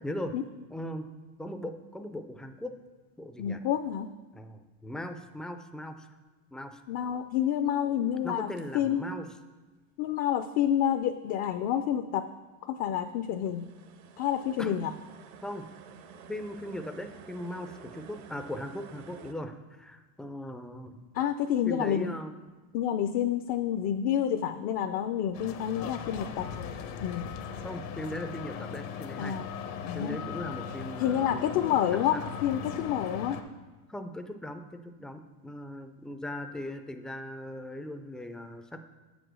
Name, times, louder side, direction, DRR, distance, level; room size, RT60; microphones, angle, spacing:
voice 1, 0.0-0.3 0.7-1.1 1.4-2.7 3.2-3.6 4.3-6.1 6.5-6.8 8.2-9.3 14.6-14.8 15.4-15.7 16.3-21.0 21.6-22.3 27.6-29.4 29.9-32.2 33.9-38.8, left 1 dB, ahead, 7 dB, 0.3 m, -39 dB
voice 2, 3.4-4.1 6.9-8.5 8.7-9.0 10.0-12.3 12.7-13.7 14.2-14.9 21.1-22.1 22.7-26.5 27.0-27.3 29.2-29.5 29.8-30.2 31.0-33.4, left 10 dB, 50° left, 8 dB, 0.5 m, -28 dB
sound 1, 8.4-8.6 13.2-19.3, right 7 dB, 70° right, 0.9 m, -50 dB
sound 2, 25.3-33.4, left 7 dB, 70° left, 1.0 m, -39 dB
7.2 x 5.1 x 6.1 m, 1.3 s
supercardioid pair, 100°, 43 cm